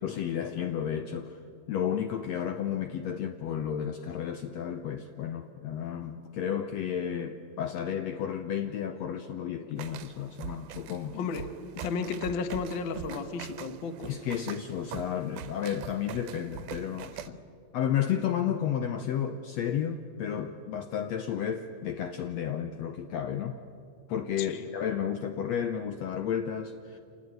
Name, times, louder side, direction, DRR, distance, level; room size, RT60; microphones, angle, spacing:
voice 1, 0.0-1.4 1.7-11.2 14.1-17.4 17.7-23.6 24.1-27.0, left 9 dB, 70° left, 8 dB, 1.8 m, -32 dB
sound 1, 9.8-17.3, right 10 dB, 85° right, 2.3 m, -43 dB
voice 2, 11.1-14.1 17.1-17.4 24.4-24.7, left 5 dB, 50° left, 10 dB, 1.5 m, -34 dB
27.5 x 19.5 x 9.2 m, 2.6 s
omnidirectional pair, 3.6 m